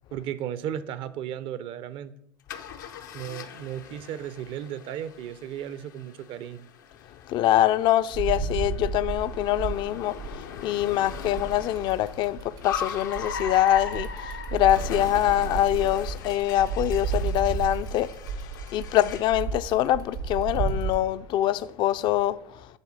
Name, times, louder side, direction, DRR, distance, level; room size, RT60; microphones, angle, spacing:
voice 1, 0.1-2.1 3.1-6.7, right 10 dB, 55° right, 0.5 m, -35 dB
Car, 2.5-19.4, left 7 dB, 90° left, 0.6 m, -40 dB
voice 2, 7.3-18.1 18.7-22.7, left 13 dB, 50° left, 0.3 m, -24 dB
sound 1, 8.1-10.6 11.1-20.9, right 6 dB, 85° right, 1.1 m, -33 dB
8.3 x 3.3 x 6.3 m
hypercardioid pair, 85°, 10 cm